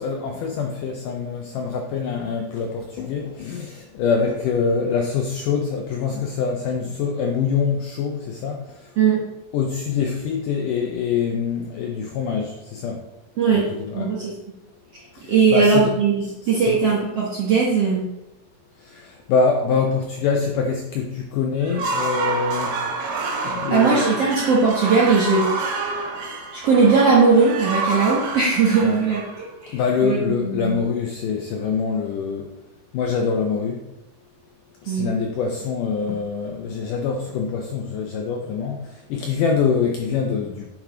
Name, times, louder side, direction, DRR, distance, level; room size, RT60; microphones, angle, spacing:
voice 1, 0.0-8.6 9.5-13.0 13.5-14.2 15.1-16.0 16.2-16.9 18.8-22.8 23.4-24.1 28.8-29.2 29.7-32.5 32.9-33.8 34.8-40.7, left 5 dB, 80° left, 2 dB, 1.9 m, -25 dB
voice 2, 9.0-9.3 13.4-13.7 13.9-14.3 15.3-18.0 23.4-25.7 26.5-29.7 30.0-30.7 34.9-35.1, right 5 dB, 65° right, -5 dB, 1.5 m, -19 dB
Crazy brass, 21.6-29.7, right 3 dB, 80° right, 3.1 m, -28 dB
9.2 x 4.9 x 3.8 m, 0.92 s
omnidirectional pair, 4.5 m